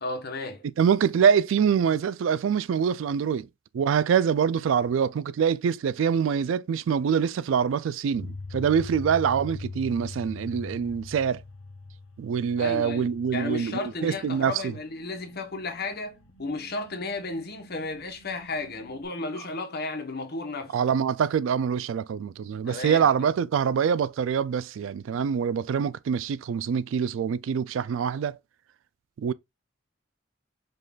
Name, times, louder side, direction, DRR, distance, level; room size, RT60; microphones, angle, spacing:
voice 1, 0.0-0.6 12.6-20.7 22.7-23.1, left 3 dB, 55° left, 1.1 m, -33 dB
voice 2, 0.8-3.5 3.7-11.4 12.2-14.7 20.7-28.4 29.2-29.3, right 7 dB, 75° right, 0.3 m, -25 dB
sound 1, 8.1-19.1, left 3 dB, 85° left, 0.9 m, -43 dB
5.2 x 2.4 x 3.8 m
head